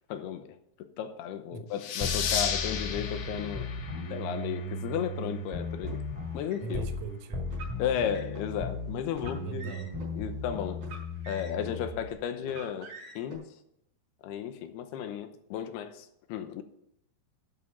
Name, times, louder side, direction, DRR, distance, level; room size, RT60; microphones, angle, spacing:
voice 1, 0.1-3.7 4.1-6.0 6.3-6.9 7.8-9.7 10.1-10.9 11.3-12.9 13.2-13.5 14.2-16.6, left 9 dB, 80° left, 2.9 m, -34 dB
sound 1, 1.8-5.0, left 7 dB, 60° left, 2.4 m, -34 dB
sound 2, 2.0-7.1 7.3-12.1, left 2 dB, 10° right, 2.3 m, -36 dB
Car, 5.8-6.8 7.5-8.5 9.1-10.1 10.8-11.8 12.4-13.4, right 3 dB, 60° right, 6.7 m, -46 dB
voice 2, 6.6-7.4 9.4-10.0, right 4 dB, 80° right, 1.4 m, -40 dB
12.5 x 7.5 x 5.3 m
omnidirectional pair, 4.7 m